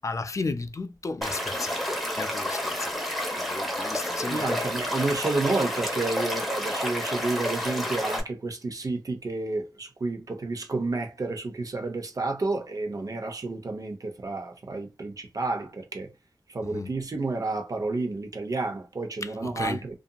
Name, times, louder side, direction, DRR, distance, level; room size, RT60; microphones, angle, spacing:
voice 1, 0.0-1.8 2.2-3.0 3.4-4.6 16.6-16.9 19.2-19.8, left 3 dB, 45° left, 0.4 m, -34 dB
Stream / Liquid, 1.2-8.2, equal, ahead, 0.9 m, -30 dB
voice 2, 4.3-16.1 16.5-20.0, right 3 dB, 55° right, 0.7 m, -30 dB
2.7 x 2.5 x 2.2 m
wide cardioid pair, 80°, 7 cm